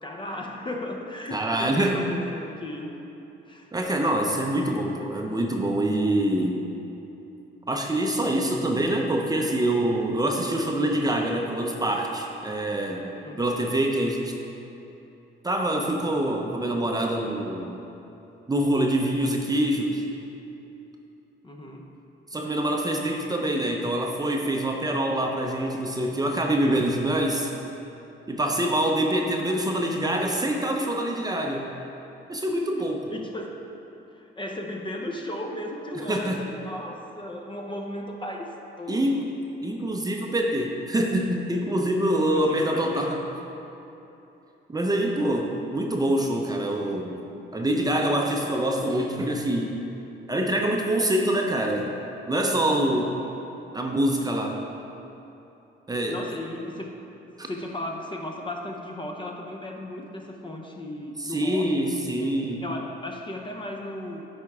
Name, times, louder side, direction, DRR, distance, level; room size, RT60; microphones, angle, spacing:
voice 1, 0.0-2.9 3.5-3.7 13.2-13.6 21.4-21.9 29.8-30.4 33.1-33.6 34.1-39.3 42.2-43.2 53.2-53.4 56.1-57.0 57.5-64.2, left 1 dB, 25° left, 2 dB, 0.8 m, -36 dB
voice 2, 1.3-2.1 3.7-6.6 7.7-13.1 13.4-14.3 15.4-17.8 18.5-20.0 22.3-27.5 28.3-31.7 32.3-33.1 36.1-36.4 38.9-39.2 39.6-43.2 44.7-47.3 47.5-49.8 50.3-51.9 52.3-53.2 53.7-54.6 55.9-56.2 57.4-57.5 61.2-62.6, right 1 dB, 20° right, 1 dB, 0.7 m, -25 dB
10.5 x 4.4 x 3.6 m, 2.9 s
cardioid pair, 90°, 20 cm